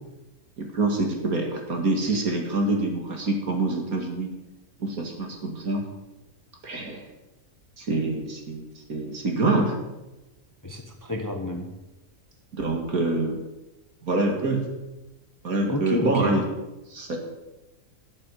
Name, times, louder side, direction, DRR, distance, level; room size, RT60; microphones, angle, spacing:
voice 1, 0.6-4.3 4.8-5.8 6.6-7.0 7.8-9.7 12.5-13.4 14.0-14.6 15.4-16.4 16.9-17.2, right 2 dB, 75° right, 1 dB, 2.5 m, -26 dB
voice 2, 10.6-11.7 15.7-16.4, left 2 dB, 15° left, 4 dB, 1.1 m, -29 dB
12.0 x 7.6 x 7.9 m, 1.0 s
omnidirectional pair, 1.5 m